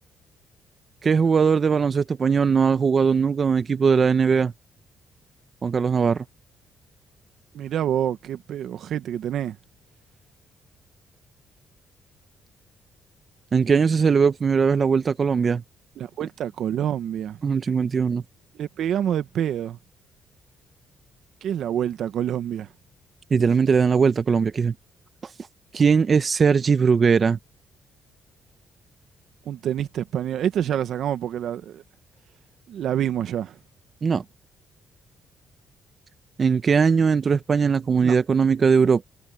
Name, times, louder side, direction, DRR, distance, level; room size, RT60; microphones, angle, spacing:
voice 1, 1.0-4.5 5.6-6.2 13.5-15.6 17.4-18.2 23.3-24.7 25.7-27.4 34.0-34.2 36.4-39.1, right 5 dB, 40° right, 0.9 m, -20 dB
voice 2, 7.5-9.6 16.0-17.4 18.5-19.8 21.4-22.7 29.5-31.8 32.7-33.6 38.0-38.1, right 10 dB, 70° right, 1.2 m, -27 dB
cardioid pair, 90°, 0 cm